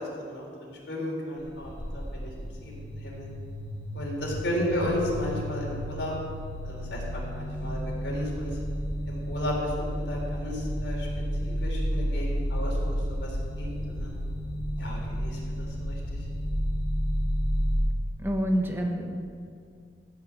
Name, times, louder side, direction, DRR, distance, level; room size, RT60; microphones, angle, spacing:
voice 1, 0.0-3.3 3.9-6.1 6.6-8.6 9.1-11.1 11.4-14.2 14.8-16.2, left 1 dB, 80° left, -3 dB, 3.7 m, -34 dB
sound 1, 1.4-17.8, equal, 10° left, 2.9 m, -31 dB
voice 2, 18.2-19.1, equal, 10° right, 2 dB, 1.1 m, -28 dB
15.0 x 5.7 x 7.6 m, 2.2 s
head